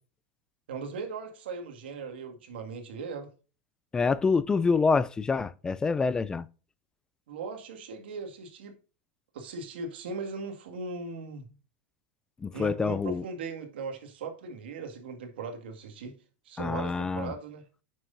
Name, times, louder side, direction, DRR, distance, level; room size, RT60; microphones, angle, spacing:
voice 1, 0.7-3.3 7.3-8.8 9.3-11.5 12.5-16.1 16.5-17.6, right 4 dB, 90° right, 2.0 m, -38 dB
voice 2, 3.9-6.5 12.4-13.2 16.6-17.3, left 4 dB, 15° left, 0.4 m, -26 dB
9.3 x 6.2 x 2.6 m
supercardioid pair, 140°, 5 cm